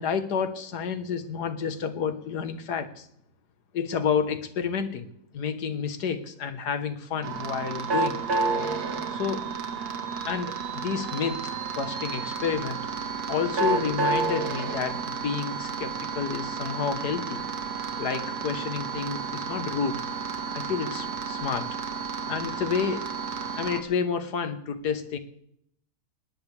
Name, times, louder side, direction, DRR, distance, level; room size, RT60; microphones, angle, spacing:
voice 1, 0.0-3.1 3.7-5.1 5.3-8.2 9.1-9.5 10.3-11.4 11.8-12.8 13.3-17.4 18.0-20.0 20.5-21.7 22.3-23.1 23.6-25.2, left 6 dB, 75° left, 9 dB, 1.9 m, -30 dB
sound 1, 7.2-23.8, right 4 dB, 70° right, 2.2 m, -31 dB
20.0 x 19.0 x 3.4 m, 0.71 s
omnidirectional pair, 1.8 m